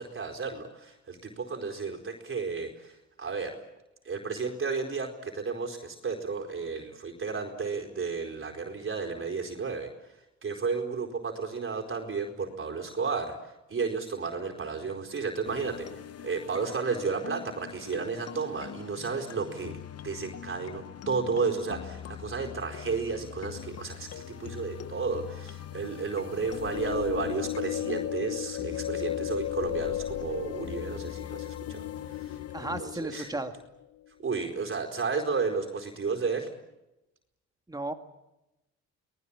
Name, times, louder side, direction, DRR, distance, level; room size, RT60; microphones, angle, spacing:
voice 1, 0.0-3.6 4.0-9.9 10.4-15.9 16.2-19.7 20.0-32.4 32.8-33.3 34.2-36.5, right 5 dB, 40° right, 2 dB, 4.4 m, -33 dB
sound 1, 15.4-32.8, left 10 dB, 55° left, 1.0 m, -43 dB
sound 2, 26.3-33.7, left 13 dB, 75° left, 0.9 m, -35 dB
voice 2, 32.5-33.6 37.7-37.9, right 2 dB, 10° right, 6 dB, 2.3 m, -34 dB
24.5 x 20.0 x 8.8 m, 0.94 s
cardioid pair, 90°, 30 cm